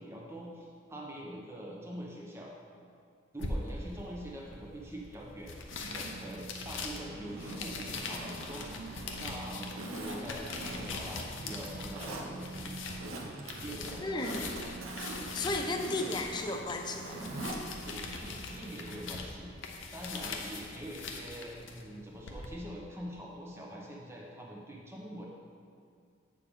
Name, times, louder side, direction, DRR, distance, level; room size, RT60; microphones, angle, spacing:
voice 1, 0.0-2.5 3.3-5.5 5.9-8.6 9.2-12.8 13.6-14.4 17.8-19.6 19.9-25.3, equal, 15° right, -2 dB, 0.9 m, -44 dB
sound 1, 3.4-22.5, left 3 dB, 80° left, 0.8 m, -42 dB
sound 2, 5.7-19.3, right 3 dB, 50° right, 0.4 m, -47 dB
Zipper (clothing), 7.2-9.2 9.8-11.2 11.5-12.3 12.8-13.5 13.8-17.6 17.9-18.0, right 1 dB, 90° right, 0.9 m, -43 dB
voice 2, 14.0-14.4 15.3-17.2, left 2 dB, 20° left, 3 dB, 0.4 m, -34 dB
8.5 x 6.6 x 3.6 m, 2.3 s
head